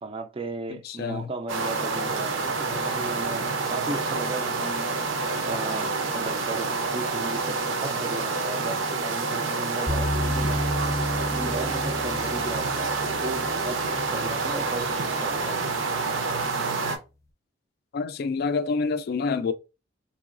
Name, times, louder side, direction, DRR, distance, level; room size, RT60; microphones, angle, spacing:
voice 1, 0.0-5.1 5.5-10.7 11.3-12.9 13.2-13.8 14.1-15.8, right 2 dB, 30° right, 0.4 m, -36 dB
voice 2, 0.7-1.3 17.9-19.5, left 4 dB, 55° left, 0.3 m, -27 dB
sound 1, 1.5-17.0, right 3 dB, 90° right, 0.7 m, -28 dB
sound 2, 9.9-15.0, left 1 dB, 15° left, 0.7 m, -32 dB
3.9 x 2.8 x 2.4 m
head